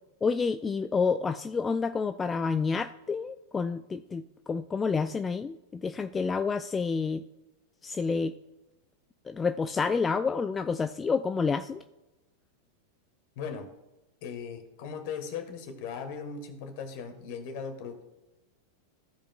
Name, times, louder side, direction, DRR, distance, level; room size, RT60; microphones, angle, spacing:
voice 1, 0.2-7.2 7.8-8.4 9.3-11.8, left 5 dB, 20° left, 9 dB, 0.3 m, -29 dB
voice 2, 13.3-13.7 14.2-18.0, left 6 dB, 55° left, 7 dB, 1.5 m, -38 dB
15.0 x 5.0 x 2.4 m, 1.0 s
hypercardioid pair, 95°, 0 cm